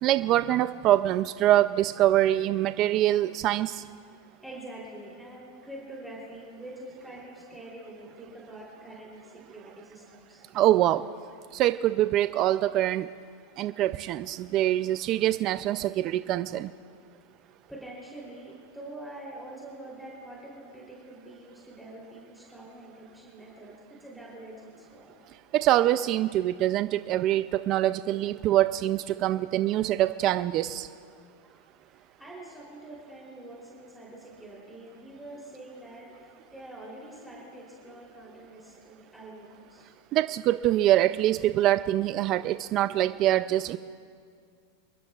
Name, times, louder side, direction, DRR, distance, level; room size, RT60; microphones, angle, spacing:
voice 1, 0.0-3.8 10.5-11.1 11.5-13.1 13.6-16.7 25.5-30.9 40.1-43.8, right 13 dB, 35° right, 11 dB, 0.4 m, -24 dB
voice 2, 4.4-10.4 17.3-17.4 17.7-25.1 31.4-40.0, right 1 dB, ahead, -6 dB, 3.3 m, -45 dB
27.5 x 22.0 x 2.4 m, 2.2 s
supercardioid pair, 155°, 0 cm